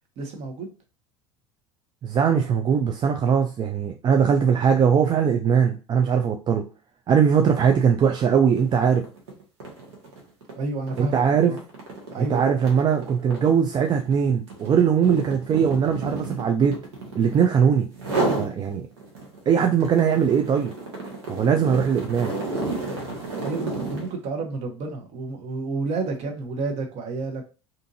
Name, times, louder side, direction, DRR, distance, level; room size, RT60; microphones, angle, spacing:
voice 1, 0.2-0.7 10.5-11.6 12.1-12.6 23.4-27.5, right 3 dB, 50° right, 4 dB, 0.9 m, -30 dB
voice 2, 2.0-6.6 7.1-9.0 11.0-11.5 12.2-16.8 17.1-17.9 18.4-18.8 19.5-20.7 21.3-22.3, right 7 dB, 30° right, 3 dB, 0.4 m, -20 dB
sound 1, 8.5-8.7 9.0-17.5 17.9-18.5 19.0-24.1, right 2 dB, 75° right, 1.0 m, -31 dB
2.7 x 2.5 x 2.6 m, 0.33 s
hypercardioid pair, 75°, 15 cm